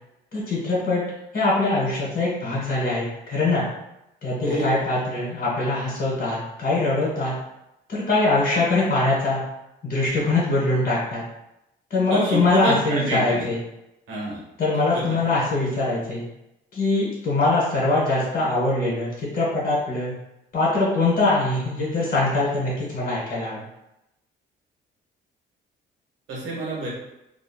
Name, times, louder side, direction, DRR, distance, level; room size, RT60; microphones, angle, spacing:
voice 1, 0.3-1.0 1.3-3.6 4.2-7.3 7.9-9.4 9.8-11.2 11.9-13.6 14.6-16.2 16.7-20.1 20.5-23.7, left 2 dB, 45° left, -6 dB, 1.1 m, -23 dB
voice 2, 12.1-13.5 14.1-14.4 14.9-15.2 26.3-26.9, right 1 dB, 85° right, -4 dB, 1.1 m, -27 dB
2.7 x 2.7 x 2.2 m, 0.88 s
cardioid pair, 90°, 20 cm